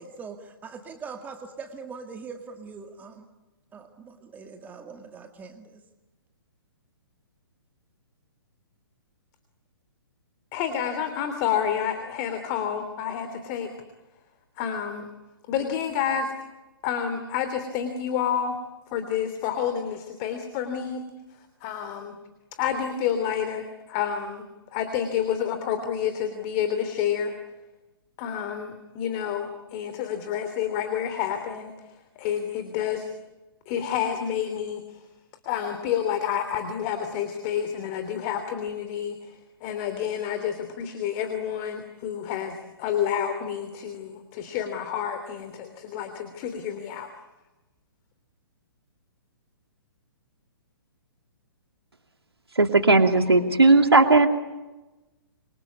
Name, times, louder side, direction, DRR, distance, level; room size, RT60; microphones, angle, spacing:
voice 1, 0.0-3.3 3.7-5.6, right 5 dB, 15° right, 6 dB, 2.1 m, -42 dB
voice 2, 10.5-13.7 14.6-15.1 15.5-16.3 16.8-18.6 18.9-21.0 21.6-22.2 22.6-24.4 24.7-27.4 28.2-33.1 33.7-35.0 35.4-47.1, left 8 dB, 35° left, 8 dB, 3.1 m, -29 dB
voice 3, 52.6-54.3, right 3 dB, 85° right, 7 dB, 2.6 m, -17 dB
28.0 x 24.5 x 8.5 m, 1.1 s
figure-of-eight pair, 125°, 13 cm